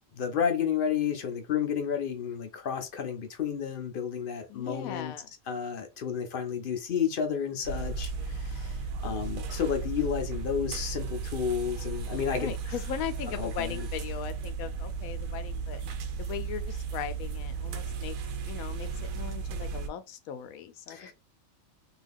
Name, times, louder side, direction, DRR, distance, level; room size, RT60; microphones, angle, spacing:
voice 1, 0.1-5.1 5.5-12.7 13.4-13.9 20.9-21.1, left 8 dB, 60° left, 0.6 m, -31 dB
voice 2, 4.5-5.3 12.4-15.8 16.2-18.2 18.5-18.9 19.1-21.1, left 9 dB, 85° left, 1.0 m, -38 dB
sound 1, 7.6-19.9, right 5 dB, 85° right, 1.0 m, -35 dB
2.7 x 2.3 x 3.5 m
omnidirectional pair, 1.4 m